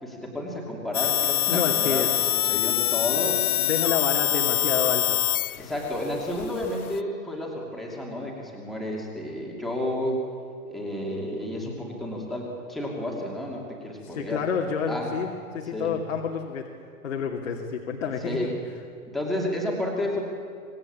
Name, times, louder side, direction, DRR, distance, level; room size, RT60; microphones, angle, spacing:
voice 1, 0.0-3.4 5.6-10.2 10.7-14.4 14.9-15.1 15.7-15.9 18.2-18.5 19.1-20.2, left 1 dB, ahead, -2 dB, 2.7 m, -31 dB
sound 1, 0.9-7.0, left 12 dB, 85° left, 0.8 m, -25 dB
voice 2, 1.5-2.9 3.6-5.2 14.0-15.3 15.5-16.7 17.0-18.5, left 6 dB, 60° left, 0 dB, 2.8 m, -29 dB
26.0 x 20.5 x 8.8 m, 2.4 s
hypercardioid pair, 175°, 42 cm